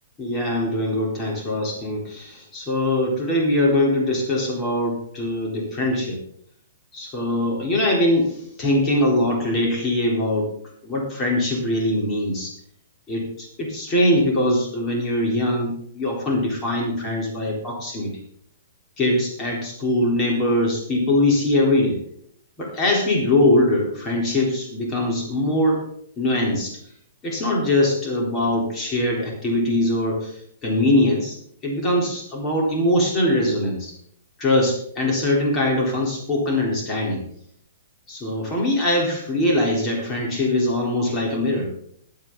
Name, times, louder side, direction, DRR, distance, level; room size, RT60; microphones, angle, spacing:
voice 1, 0.2-6.2 6.9-10.5 10.8-12.6 13.1-18.1 19.0-22.0 22.6-25.8 26.2-26.8 27.2-31.4 31.6-33.9 34.4-37.2 38.1-41.8, left 1 dB, 20° left, -1 dB, 4.0 m, -22 dB
12.5 x 11.5 x 4.0 m, 0.65 s
hypercardioid pair, 155°, 0 cm